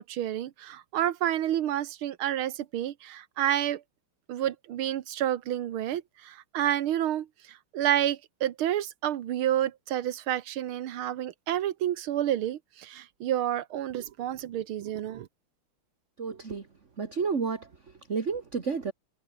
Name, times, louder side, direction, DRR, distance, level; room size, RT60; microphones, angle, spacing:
voice 1, 0.0-3.8 4.3-15.3, right 11 dB, 75° right, 1.9 m, -29 dB
voice 2, 16.2-16.7 17.0-17.7 18.1-18.9, right 5 dB, 35° right, 2.1 m, -30 dB
omnidirectional pair, 2.4 m